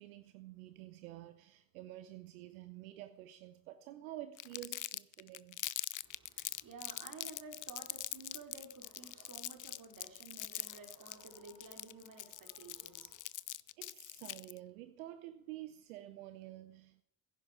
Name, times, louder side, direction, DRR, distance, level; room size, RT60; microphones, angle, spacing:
voice 1, 0.0-5.6 13.8-17.0, right 14 dB, 90° right, 0.7 m, -49 dB
Crumpling crinkling, 4.4-14.6, left 14 dB, 50° left, 0.6 m, -43 dB
voice 2, 6.0-13.2, right 4 dB, 50° right, 3.4 m, -53 dB
15.5 x 10.5 x 4.7 m
hypercardioid pair, 50°, 41 cm